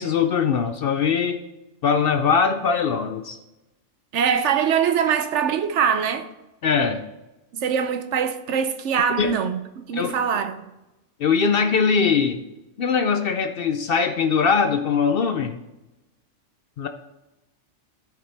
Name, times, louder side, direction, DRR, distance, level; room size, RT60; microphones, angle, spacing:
voice 1, 0.0-1.4 1.8-3.4 6.6-7.0 9.2-9.3 9.9-10.1 11.2-12.4 12.8-15.6 16.8-16.9, left 6 dB, 60° left, 0.7 m, -21 dB
voice 2, 4.1-6.3 7.5-9.6 9.9-10.7, right 7 dB, 70° right, 0.9 m, -23 dB
13.5 x 5.1 x 3.3 m
omnidirectional pair, 1.3 m